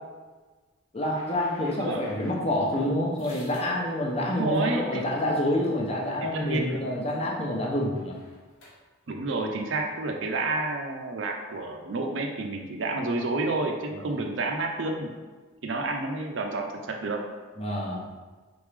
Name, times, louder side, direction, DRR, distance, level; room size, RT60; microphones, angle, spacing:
voice 1, 0.9-8.2 13.9-14.2 17.6-18.0, left 1 dB, 30° left, -2 dB, 0.7 m, -28 dB
sound 1, 1.1-4.7 5.3-5.5 5.8-6.1 6.3-7.1 7.4-8.7, left 1 dB, 90° left, 1.2 m, -49 dB
voice 2, 4.3-5.1 6.2-6.9 9.1-15.1 15.6-17.2, right 2 dB, 70° right, 3 dB, 0.5 m, -30 dB
4.0 x 3.5 x 3.3 m, 1.3 s
head